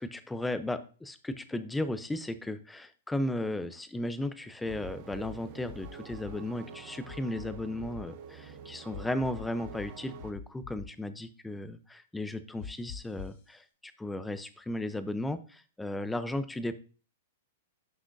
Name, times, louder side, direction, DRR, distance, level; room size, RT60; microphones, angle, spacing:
voice 1, 0.0-16.8, left 1 dB, 5° left, 12 dB, 0.6 m, -35 dB
sound 1, 4.6-10.3, right 7 dB, 45° right, 1.0 m, -48 dB
sound 2, 4.7-5.3 5.7-6.3 7.1-8.0 8.9-9.9 10.2-10.8 12.6-13.4, left 7 dB, 60° left, 3.2 m, -44 dB
9.9 x 5.9 x 2.6 m, 0.38 s
hypercardioid pair, 140°, 0 cm